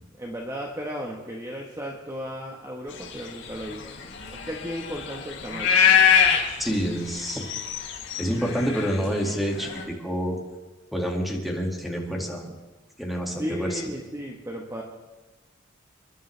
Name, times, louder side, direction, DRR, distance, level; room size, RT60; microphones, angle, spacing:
voice 1, 0.2-3.9 4.3-6.0 8.4-8.5 13.3-14.8, equal, 15° right, -1 dB, 1.2 m, -35 dB
sound 1, 3.0-9.8, left 8 dB, 75° left, 4.0 m, -24 dB
voice 2, 6.6-7.5 8.2-10.4 10.9-12.4 13.0-13.8, equal, ahead, 0 dB, 2.1 m, -28 dB
29.0 x 11.0 x 3.3 m, 1.2 s
head